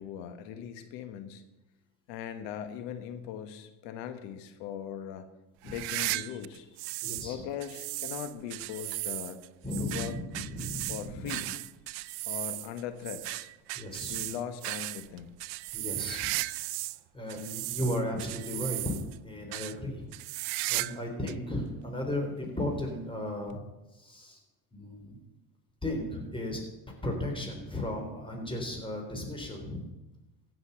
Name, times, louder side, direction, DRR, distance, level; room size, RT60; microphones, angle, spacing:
voice 1, 0.0-1.4 2.1-5.2 5.6-6.7 7.2-9.4 9.8-10.2 10.9-11.5 12.2-13.5 14.1-15.4, left 9 dB, 75° left, 9 dB, 1.3 m, -40 dB
sound 1, 5.6-7.3 7.6-17.0 17.3-19.2 19.5-19.7 20.1-21.0 21.3-21.4 22.2-22.3 23.5-23.6, right 22 dB, 80° right, 0.6 m, -36 dB
voice 2, 7.0-7.4 9.6-11.4 13.7-14.2 15.7-16.3 17.1-20.1 20.7-23.6 23.9-24.4 24.7-25.2 25.8-26.6 27.0-29.8, left 1 dB, 10° left, 1 dB, 3.9 m, -35 dB
15.0 x 6.9 x 6.9 m, 1.0 s
supercardioid pair, 75°, 44 cm